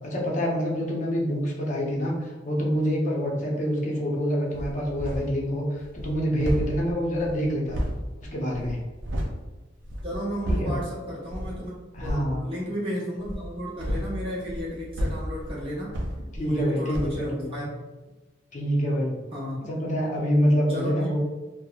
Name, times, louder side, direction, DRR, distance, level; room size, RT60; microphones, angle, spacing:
voice 1, 0.0-7.8 8.3-8.8 10.5-10.8 11.9-12.5 16.3-17.6 18.5-19.1 19.6-21.2, equal, 40° left, -2 dB, 0.6 m, -26 dB
sound 1, 4.5-5.4 5.8-9.4 9.8-10.9 11.3-11.6 11.9-12.3 13.2-16.7 16.9-17.2, equal, 80° right, 0.4 m, -32 dB
voice 2, 10.0-15.9 16.4-17.7 19.3-19.7 20.7-21.2, equal, 30° right, -8 dB, 0.8 m, -33 dB
2.9 x 2.0 x 2.3 m, 1.1 s
head